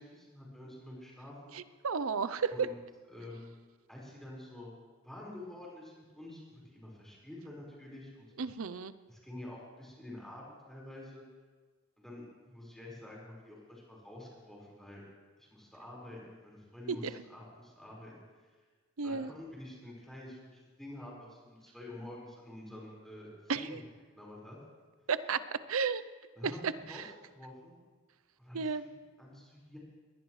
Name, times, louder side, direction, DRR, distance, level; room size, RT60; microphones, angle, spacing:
voice 1, 0.0-1.5 2.5-2.8 3.1-3.6 3.9-4.8 5.0-8.3 9.1-11.2 12.0-15.0 15.4-18.2 19.0-23.8 24.1-24.6 26.3-27.8 28.4-29.8, left 1 dB, ahead, -5 dB, 4.8 m, -48 dB
voice 2, 1.5-2.7 8.4-8.9 16.9-17.1 19.0-19.3 23.5-23.8 25.1-25.4 25.7-26.0 26.4-27.1 28.5-28.8, right 5 dB, 75° right, 14 dB, 0.6 m, -33 dB
22.0 x 19.0 x 3.2 m, 1.4 s
head